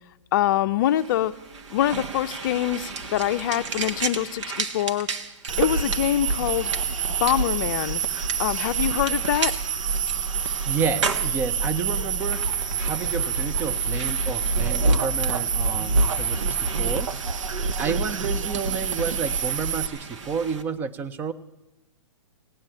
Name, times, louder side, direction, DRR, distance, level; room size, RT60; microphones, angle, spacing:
voice 1, 0.3-1.3 1.7-5.1 5.6-6.7 7.2-8.0 8.4-9.5, left 12 dB, 40° left, 9 dB, 0.5 m, -24 dB
sound 1, 0.9-20.6, right 4 dB, 70° right, 1.5 m, -36 dB
sound 2, 5.5-19.9, right 5 dB, 90° right, 0.8 m, -26 dB
voice 2, 10.4-12.4 12.8-17.1 17.8-21.3, right 6 dB, 10° right, 14 dB, 0.4 m, -30 dB
17.5 x 9.0 x 8.7 m, 1.0 s
hypercardioid pair, 155°, 16 cm